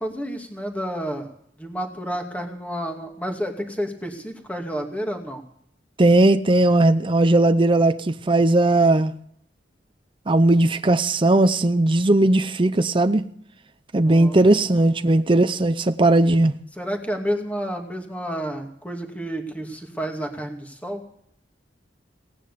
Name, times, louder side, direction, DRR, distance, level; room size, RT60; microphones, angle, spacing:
voice 1, 0.0-1.3 1.6-5.4 14.0-15.1 16.7-21.0, equal, 10° left, 2.3 m, -30 dB
voice 2, 6.0-9.1 10.3-13.2 13.9-16.5, right 2 dB, 30° right, 0.6 m, -18 dB
18.0 x 9.9 x 6.8 m
head